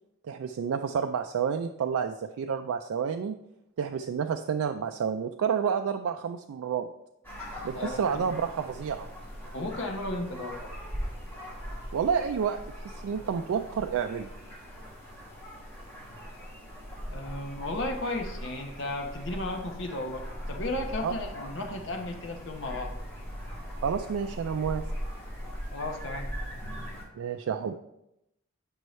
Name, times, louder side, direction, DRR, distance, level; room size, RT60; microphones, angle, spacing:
voice 1, 0.3-3.4 3.8-6.9 7.6-9.1 11.9-12.6 12.8-14.3 21.0-21.1 23.8-24.8 27.2-27.8, right 7 dB, 75° right, 6 dB, 0.3 m, -29 dB
sound 1, 7.2-27.0, equal, 10° left, 1.6 m, -40 dB
voice 2, 7.7-8.4 9.5-10.7 17.1-22.9 25.7-26.3, left 2 dB, 55° left, 4 dB, 0.8 m, -34 dB
7.8 x 5.4 x 3.1 m, 0.84 s
head